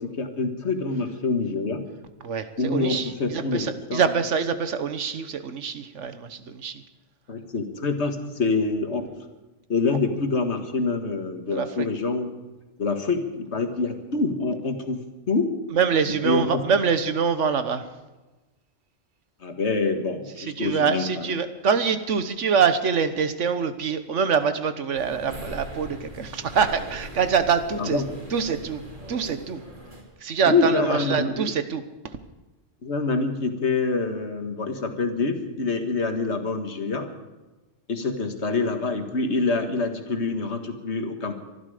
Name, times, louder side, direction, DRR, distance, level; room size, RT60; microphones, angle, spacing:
voice 1, 0.0-1.9 2.6-4.0 7.3-9.1 9.7-12.3 12.8-15.0 15.3-15.5 16.2-16.6 19.4-21.3 27.8-28.0 30.5-31.4 32.8-37.1 37.9-41.3, left 3 dB, 70° left, 6 dB, 1.9 m, -26 dB
voice 2, 2.2-6.8 11.5-11.9 15.7-17.9 20.4-28.0 28.3-28.8 29.1-29.6 30.2-32.2, right 6 dB, 85° right, 11 dB, 1.4 m, -25 dB
sound 1, 24.9-30.0, right 1 dB, 45° right, 3.1 m, -40 dB
24.0 x 12.0 x 5.0 m, 1.1 s
omnidirectional pair, 1.2 m